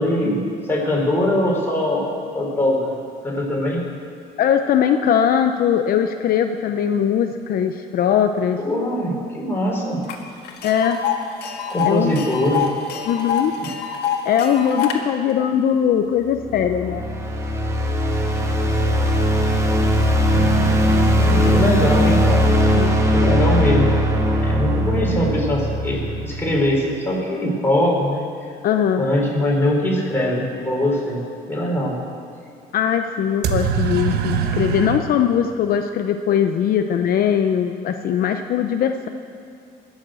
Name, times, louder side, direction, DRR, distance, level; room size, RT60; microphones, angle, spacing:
voice 1, 0.0-2.1 2.3-2.8 3.2-3.9 8.6-10.0 11.7-12.7 13.6-13.7 21.1-22.5 23.1-24.0 24.3-28.2 29.0-32.0, left 1 dB, 15° left, -3 dB, 4.5 m, -22 dB
voice 2, 4.4-8.6 10.6-11.0 11.8-12.2 13.0-13.5 14.2-17.2 22.7-23.0 28.6-29.1 32.7-39.1, left 8 dB, 60° left, 6 dB, 0.7 m, -20 dB
Tick, 10.1-10.2 10.4-15.0, left 8 dB, 80° left, 1.7 m, -26 dB
sound 1, 16.4-26.6, equal, 15° right, 1.7 m, -19 dB
sound 2, 20.3-26.1 33.4-35.0, right 7 dB, 75° right, 1.1 m, -28 dB
21.0 x 7.4 x 7.7 m, 2.4 s
cardioid pair, 110°, 17 cm